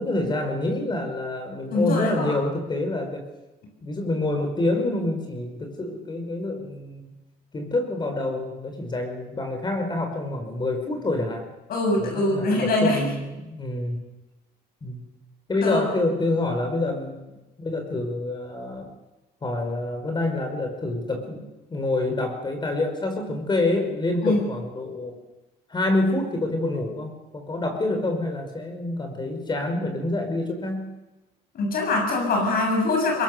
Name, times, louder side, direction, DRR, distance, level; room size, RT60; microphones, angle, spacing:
voice 1, 0.0-3.3 3.8-7.1 7.5-11.5 12.0-14.0 14.8-15.0 15.5-18.9 19.4-25.2 25.7-30.9, left 2 dB, 25° left, 5 dB, 5.3 m, -27 dB
voice 2, 1.7-2.3 11.7-13.1 15.6-15.8 24.2-24.4 31.5-33.2, left 2 dB, 60° left, 1 dB, 7.3 m, -23 dB
22.5 x 21.5 x 7.0 m, 1.0 s
cardioid pair, 110°, 17 cm